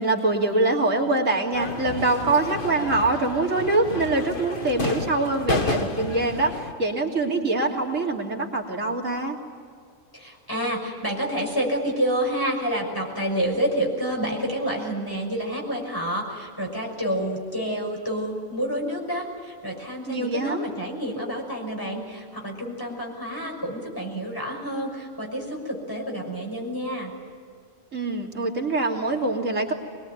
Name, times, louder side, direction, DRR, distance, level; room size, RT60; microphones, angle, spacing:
voice 1, 0.0-9.4 20.1-20.7 27.9-29.7, right 2 dB, 70° right, -1 dB, 3.5 m, -24 dB
sound 1, 1.5-6.7, left 2 dB, 40° left, 1.9 m, -31 dB
voice 2, 10.1-27.1, equal, 15° left, 0 dB, 6.0 m, -28 dB
24.0 x 21.5 x 9.5 m, 2.2 s
omnidirectional pair, 1.4 m